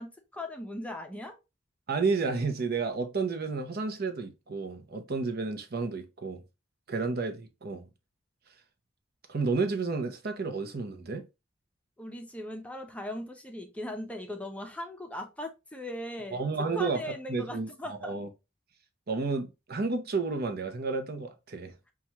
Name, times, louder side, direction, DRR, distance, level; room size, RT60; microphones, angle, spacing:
voice 1, 0.0-1.3 12.0-16.4 16.7-18.1, left 1 dB, 5° left, 0.6 m, -39 dB
voice 2, 1.9-6.4 6.9-7.9 9.3-11.3 16.3-17.0 17.3-18.3 19.1-21.7, right 4 dB, 55° right, 0.7 m, -31 dB
5.8 x 2.3 x 2.9 m
head